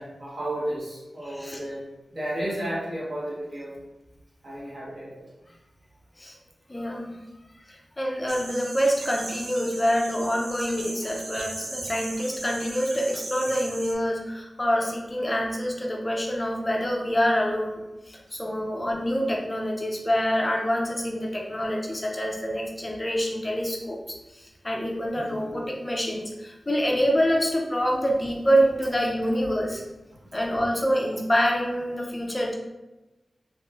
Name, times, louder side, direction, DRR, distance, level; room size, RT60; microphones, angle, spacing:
voice 1, 0.0-1.8 2.1-3.8 4.4-5.3 25.1-25.4, right 1 dB, 55° right, -7 dB, 1.2 m, -33 dB
voice 2, 1.3-1.6 6.2-6.3 6.7-7.2 7.7-29.8 30.3-32.5, equal, 25° left, -1 dB, 0.4 m, -26 dB
sound 1, 8.3-13.9, right 2 dB, 75° right, 0.5 m, -38 dB
3.0 x 2.8 x 2.3 m, 1.1 s
wide cardioid pair, 105°, 0 cm